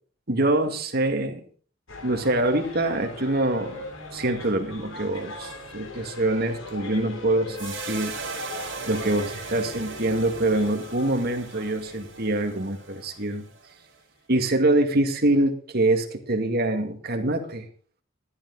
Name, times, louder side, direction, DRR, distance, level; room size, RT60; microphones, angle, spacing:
voice 1, 0.3-1.4 2.0-3.9 4.1-8.1 8.9-13.4 14.3-17.7, right 2 dB, 50° right, 6 dB, 2.1 m, -25 dB
sound 1, 1.9-13.4 13.6-13.7, left 2 dB, 90° left, 3.2 m, -40 dB
sound 2, 7.6-13.9, right 5 dB, 70° right, 2.8 m, -39 dB
13.5 x 12.0 x 4.1 m, 0.44 s
head